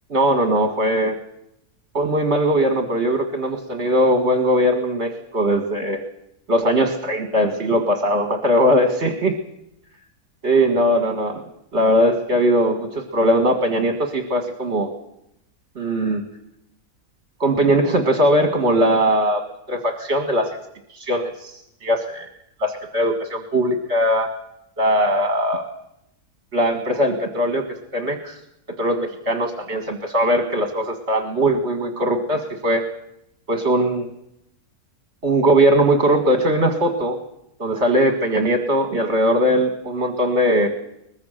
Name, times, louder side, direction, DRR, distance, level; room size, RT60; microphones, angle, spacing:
voice 1, 0.1-1.2 1.9-6.0 6.5-9.3 10.4-11.4 11.7-14.9 15.8-16.2 17.4-19.4 19.7-20.5 20.9-22.3 22.6-24.3 24.8-25.7 26.5-27.6 27.9-28.4 28.8-32.8 33.5-34.1 35.2-37.2 37.6-40.7, equal, 45° right, 5 dB, 2.2 m, -20 dB
23.0 x 21.0 x 6.7 m, 0.81 s
omnidirectional pair, 1.6 m